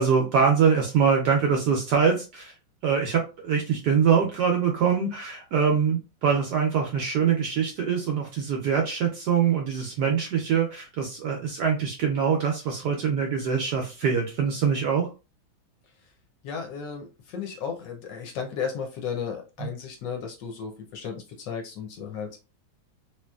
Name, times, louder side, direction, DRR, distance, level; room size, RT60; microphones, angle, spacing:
voice 1, 0.0-2.5 2.8-15.1 19.6-19.7, right 6 dB, 70° right, 2 dB, 1.0 m, -24 dB
voice 2, 16.4-22.4, left 6 dB, 70° left, 3 dB, 1.1 m, -34 dB
3.1 x 2.9 x 2.2 m, 0.30 s
omnidirectional pair, 2.2 m